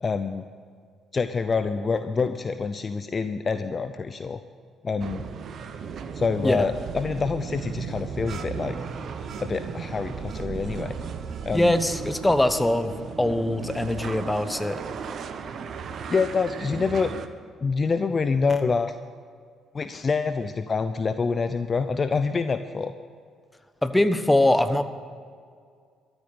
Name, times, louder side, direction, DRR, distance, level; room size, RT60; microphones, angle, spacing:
voice 1, 0.0-0.5 1.1-4.4 4.8-5.2 6.1-8.8 9.4-11.0 11.4-11.8 16.1-17.1 17.6-18.9 19.7-22.9, left 4 dB, 40° left, 10 dB, 0.6 m, -26 dB
sound 1, 5.0-17.3, right 6 dB, 55° right, 0.9 m, -35 dB
voice 2, 11.5-14.8 23.8-24.8, left 1 dB, 10° left, 10 dB, 1.2 m, -22 dB
13.5 x 8.1 x 9.4 m, 2.1 s
hypercardioid pair, 50°, 0 cm